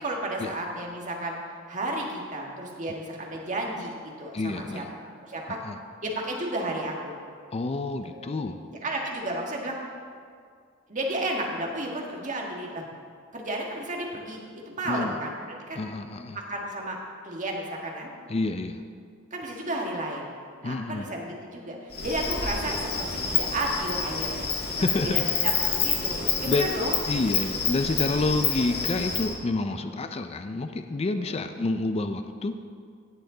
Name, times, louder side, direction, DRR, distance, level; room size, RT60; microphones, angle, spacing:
voice 1, 0.0-1.4 1.7-2.1 2.3-5.6 6.0-7.2 7.8-8.6 8.8-9.8 10.9-12.8 13.3-15.4 15.7-15.9 16.3-17.0 17.2-18.1 19.3-20.3 20.6-24.5 25.0-26.2 26.4-27.0 29.8-29.9 31.3-31.4, right 1 dB, 40° right, 0 dB, 1.6 m, -33 dB
voice 2, 4.3-4.9 5.5-5.8 7.5-8.6 14.8-15.2 15.8-16.4 18.3-18.8 20.6-21.1 24.8-25.3 26.5-26.7 27.1-32.6, left 2 dB, 30° left, 8 dB, 0.4 m, -28 dB
Insect, 21.9-29.3, left 6 dB, 50° left, 1.6 m, -28 dB
16.5 x 7.5 x 3.9 m, 2.1 s
head